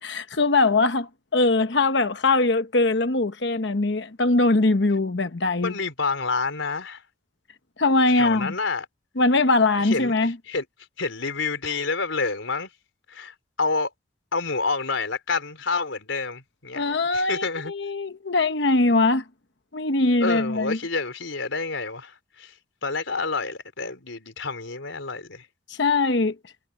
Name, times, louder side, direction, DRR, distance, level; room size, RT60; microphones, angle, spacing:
voice 1, 0.0-5.7 7.8-8.5 9.2-10.3 16.8-19.2 19.7-20.8 25.7-26.4, left 3 dB, 60° left, 1.0 m, -21 dB
voice 2, 5.6-7.0 8.1-8.9 9.8-10.7 11.0-12.7 13.1-13.9 14.3-16.8 17.1-17.7 20.2-22.6 22.8-25.5, left 4 dB, 75° left, 4.1 m, -28 dB
head